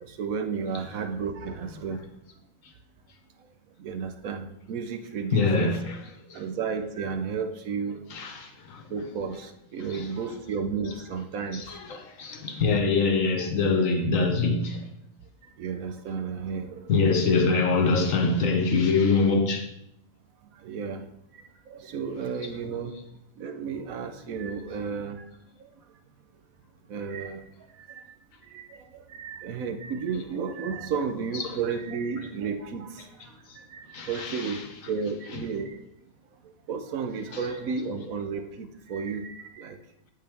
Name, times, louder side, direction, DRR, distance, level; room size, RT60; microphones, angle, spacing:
voice 1, 0.0-2.0 3.8-5.8 6.3-8.0 8.9-11.7 15.4-16.9 20.6-21.1 21.3-22.9 23.4-25.3 26.9-27.4 27.8-28.1 28.5-33.1 33.6-34.6 34.9-35.8 36.7-39.8, right 5 dB, 80° right, 1.2 m, -33 dB
voice 2, 5.3-6.4 8.1-9.4 9.8-10.4 10.8-11.0 11.5-14.9 16.9-19.7 22.4-22.5 30.9-31.5 33.5-33.6 33.9-35.4 37.3-37.5, left 4 dB, 70° left, 1.3 m, -25 dB
8.5 x 7.8 x 3.5 m
omnidirectional pair, 1.4 m